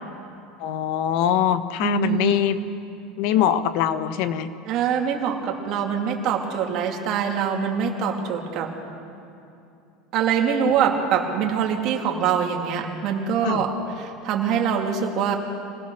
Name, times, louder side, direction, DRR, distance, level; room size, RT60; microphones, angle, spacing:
voice 1, 0.6-2.6 3.2-4.5 13.4-13.6, left 10 dB, 65° left, 11 dB, 1.0 m, -23 dB
voice 2, 1.8-2.3 4.7-8.7 10.1-13.7 14.0-15.3, right 7 dB, 45° right, 0 dB, 2.9 m, -24 dB
25.5 x 18.0 x 6.5 m, 2.7 s
supercardioid pair, 145°, 0 cm